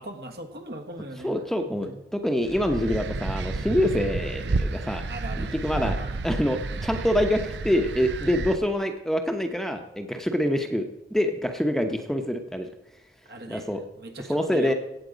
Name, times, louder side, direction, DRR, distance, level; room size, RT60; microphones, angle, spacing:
voice 1, 0.0-1.3 1.6-2.0 5.1-6.2 13.2-13.7 13.9-14.7, right 1 dB, 60° right, 4 dB, 1.4 m, -40 dB
voice 2, 1.2-5.0 5.4-6.0 6.2-10.8 11.1-12.7 13.5-13.8 14.3-14.7, equal, ahead, 5 dB, 0.8 m, -25 dB
sound 1, 2.5-8.6, right 3 dB, 85° right, 0.6 m, -31 dB
16.5 x 8.0 x 5.1 m, 0.90 s
head